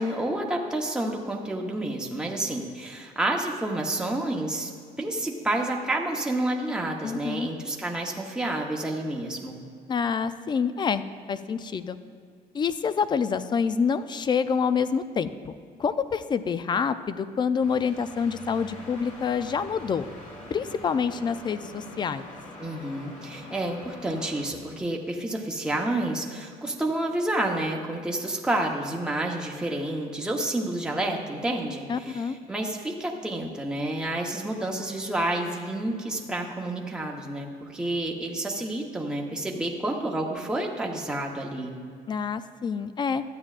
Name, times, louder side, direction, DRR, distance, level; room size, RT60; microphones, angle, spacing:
voice 1, 0.0-4.7 5.0-9.6 22.6-41.7, right 1 dB, 5° right, -1 dB, 0.9 m, -29 dB
voice 2, 7.0-7.5 9.9-11.0 11.3-12.0 12.5-15.5 15.8-20.0 20.5-22.3 31.9-32.4 42.1-43.2, left 6 dB, 25° left, 13 dB, 0.4 m, -27 dB
sound 1, 17.6-24.4, left 1 dB, 45° left, 2.2 m, -44 dB
13.0 x 8.7 x 2.4 m, 2.2 s
cardioid pair, 110°, 17 cm